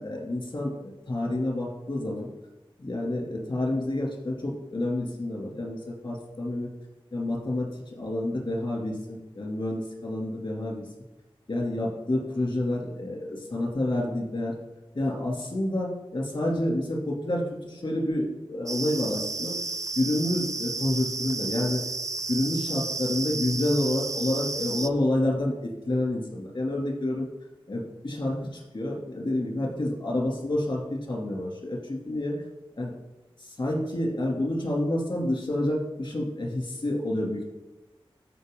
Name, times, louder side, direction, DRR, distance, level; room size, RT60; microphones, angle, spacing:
voice 1, 0.0-2.3 2.8-6.7 7.1-10.9 11.5-14.5 14.9-19.6 20.0-21.8 22.3-27.3 27.7-32.3 32.8-32.9 33.4-37.4, left 1 dB, 60° left, -1 dB, 2.7 m, -29 dB
sound 1, 18.7-24.9, right 3 dB, 35° right, 0.5 m, -32 dB
13.0 x 4.9 x 3.8 m, 1.0 s
wide cardioid pair, 60°, 10 cm